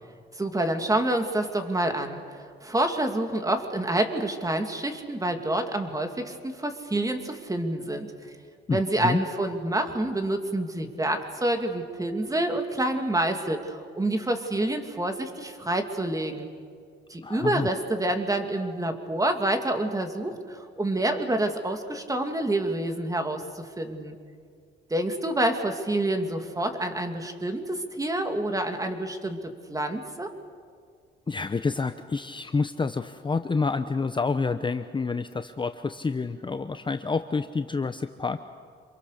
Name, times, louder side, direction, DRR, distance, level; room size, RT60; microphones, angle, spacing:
voice 1, 0.4-8.1 8.7-16.5 17.1-24.2 24.9-29.4 29.7-30.3, right 1 dB, 15° right, 6 dB, 2.6 m, -28 dB
voice 2, 8.7-9.2 17.2-17.7 31.3-38.4, left 4 dB, 25° left, 9 dB, 0.8 m, -28 dB
27.0 x 23.0 x 6.7 m, 2.2 s
cardioid pair, 90°, 20 cm